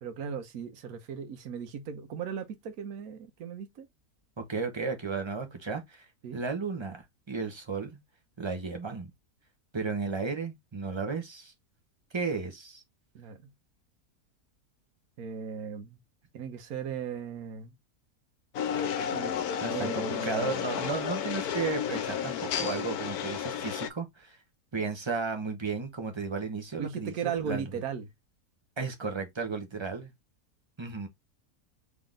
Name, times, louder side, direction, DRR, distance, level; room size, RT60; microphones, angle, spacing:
voice 1, 0.0-3.9 6.2-6.4 13.1-13.4 15.2-16.0 16.3-17.7 19.1-19.3 19.7-20.6 26.8-28.1, right 7 dB, 70° right, 1.3 m, -37 dB
voice 2, 4.4-6.0 6.3-8.0 8.4-9.1 9.7-11.5 12.1-12.8 19.6-24.4 24.7-27.6 28.8-30.1 30.8-31.1, right 4 dB, 20° right, 0.9 m, -34 dB
sound 1, 18.5-23.9, left 8 dB, 80° left, 1.1 m, -32 dB
3.9 x 3.5 x 3.7 m
omnidirectional pair, 1.6 m